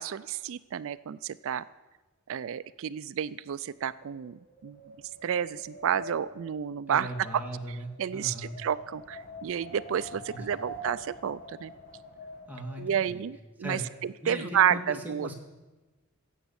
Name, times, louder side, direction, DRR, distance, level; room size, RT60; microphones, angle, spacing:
voice 1, 0.0-1.6 2.3-4.8 5.2-7.4 7.7-11.7 12.8-15.3, right 9 dB, 60° right, 16 dB, 0.4 m, -31 dB
Wind, 3.9-13.1, left 1 dB, 40° left, 1.8 m, -46 dB
voice 2, 6.9-8.6 10.3-10.5 12.5-13.2 13.6-13.8 14.2-15.3, equal, 10° right, 0 dB, 1.8 m, -38 dB
16.0 x 8.0 x 7.0 m, 1.2 s
head